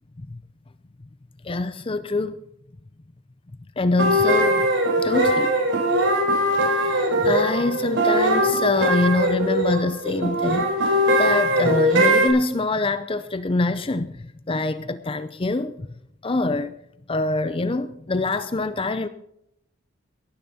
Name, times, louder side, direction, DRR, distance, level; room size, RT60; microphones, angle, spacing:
voice 1, 1.4-2.4 3.8-4.7 5.0-5.5 6.6-14.1 14.5-15.9 16.2-16.7 17.1-19.1, left 2 dB, 25° left, 0.6 m, -25 dB
sound 1, 4.0-12.3, right 1 dB, 65° right, 4.8 m, -21 dB
18.0 x 10.5 x 4.2 m
head